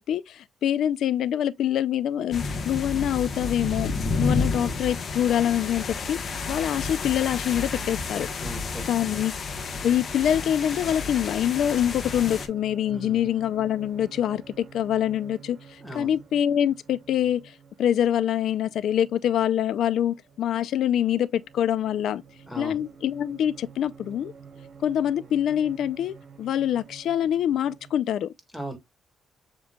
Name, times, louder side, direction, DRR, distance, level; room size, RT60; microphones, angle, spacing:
voice 1, 0.0-8.3 8.9-9.3 9.8-17.4 17.8-22.2 22.6-24.3 24.8-28.3, left 10 dB, 75° left, 0.4 m, -25 dB
sound 1, 2.3-12.5, left 4 dB, 50° left, 1.1 m, -31 dB
voice 2, 4.4-4.8 8.4-9.2 12.9-13.3 15.8-16.2 22.5-22.8 28.5-28.8, equal, 5° left, 1.9 m, -38 dB
sound 2, 8.8-28.0, right 6 dB, 55° right, 2.5 m, -50 dB
7.3 x 3.1 x 2.3 m
cardioid pair, 90°, 0 cm